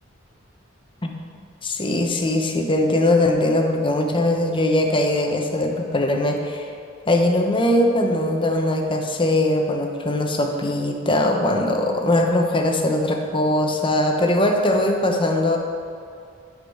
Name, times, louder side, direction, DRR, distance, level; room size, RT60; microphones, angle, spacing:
voice 1, 1.6-6.7 7.1-15.6, left 1 dB, 25° left, 2 dB, 0.8 m, -21 dB
9.0 x 5.1 x 6.4 m, 2.4 s
head